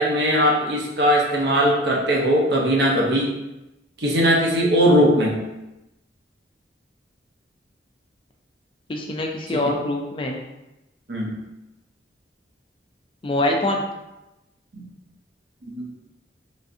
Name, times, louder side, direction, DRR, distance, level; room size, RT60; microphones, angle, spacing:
voice 1, 0.0-3.3 4.0-5.4 9.5-9.6 11.1-11.4 14.7-14.8 15.6-15.9, equal, 65° right, -2 dB, 0.7 m, -19 dB
voice 2, 8.9-10.4 13.2-13.9, left 1 dB, 30° left, 1 dB, 0.3 m, -24 dB
3.2 x 2.6 x 2.5 m, 0.96 s
head